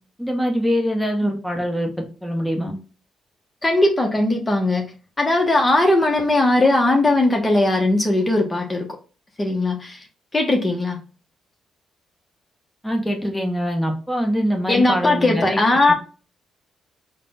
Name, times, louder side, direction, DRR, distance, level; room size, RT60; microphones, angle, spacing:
voice 1, 0.2-1.9 2.2-2.7 12.8-15.9, equal, ahead, 2 dB, 1.0 m, -23 dB
voice 2, 3.6-4.8 5.2-8.9 9.4-10.0 10.3-11.0 14.7-15.9, left 2 dB, 25° left, 2 dB, 0.8 m, -18 dB
3.7 x 2.2 x 3.4 m, 0.36 s
supercardioid pair, 65°, 0 cm